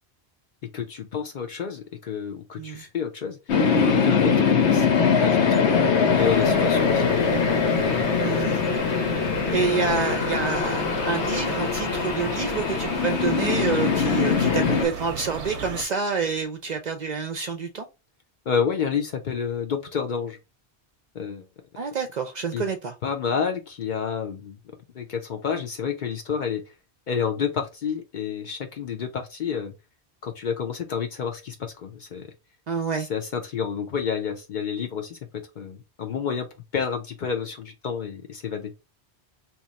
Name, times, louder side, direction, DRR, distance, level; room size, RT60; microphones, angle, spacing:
voice 1, 0.7-3.4 4.0-7.3 7.8-8.0 18.5-20.4 21.1-21.5 22.5-22.6 23.0-24.6 24.9-26.7 27.1-29.7 30.2-32.3 33.0-36.5 36.7-38.7, left 7 dB, 55° left, 0.6 m, -29 dB
sound 1, 3.5-14.9, left 6 dB, 90° left, 1.0 m, -22 dB
sound 2, 6.2-15.8, right 6 dB, 85° right, 0.9 m, -36 dB
voice 2, 8.2-8.6 9.5-17.9 21.8-22.9 32.7-33.1, right 5 dB, 55° right, 0.5 m, -28 dB
2.9 x 2.3 x 3.9 m
omnidirectional pair, 1.1 m